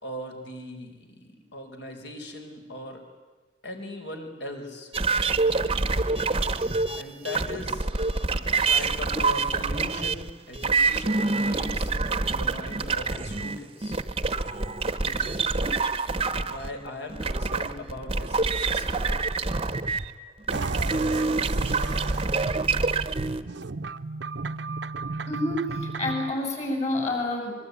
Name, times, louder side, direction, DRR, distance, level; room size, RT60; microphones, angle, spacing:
voice 1, 0.0-3.0 3.6-4.9 7.0-7.9 8.5-11.9 12.2-14.0 15.0-15.5 16.4-19.1, left 1 dB, 65° left, 3 dB, 4.8 m, -39 dB
sound 1, 4.9-20.1 20.5-23.4, right 3 dB, 30° right, 1.0 m, -26 dB
sound 2, 20.5-26.3, right 3 dB, 70° right, 0.8 m, -33 dB
voice 2, 25.3-27.5, left 1 dB, 35° left, 2 dB, 8.0 m, -28 dB
23.5 x 23.0 x 9.7 m, 1.3 s
head